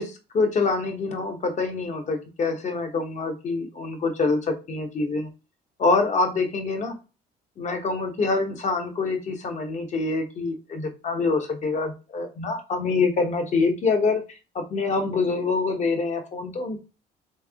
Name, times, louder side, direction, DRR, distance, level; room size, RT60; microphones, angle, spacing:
voice 1, 0.0-5.3 5.8-6.9 7.6-16.8, left 3 dB, 45° left, 5 dB, 1.1 m, -25 dB
3.4 x 3.4 x 3.5 m, 0.30 s
cardioid pair, 110°, 17 cm